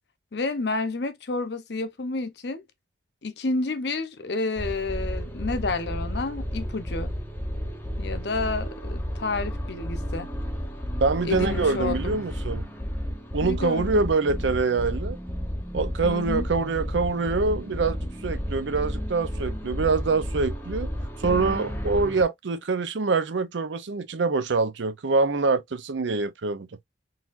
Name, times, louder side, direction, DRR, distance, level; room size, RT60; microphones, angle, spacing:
voice 1, 0.3-2.6 3.2-7.1 8.0-10.3 11.2-12.2 13.4-14.1 16.0-16.5, left 3 dB, 65° left, 0.7 m, -30 dB
sound 1, 4.6-22.2, equal, 10° left, 0.8 m, -32 dB
voice 2, 11.0-12.6 13.3-15.2 15.7-20.9 21.2-26.7, right 4 dB, 80° right, 0.6 m, -25 dB
4.0 x 2.8 x 2.5 m
head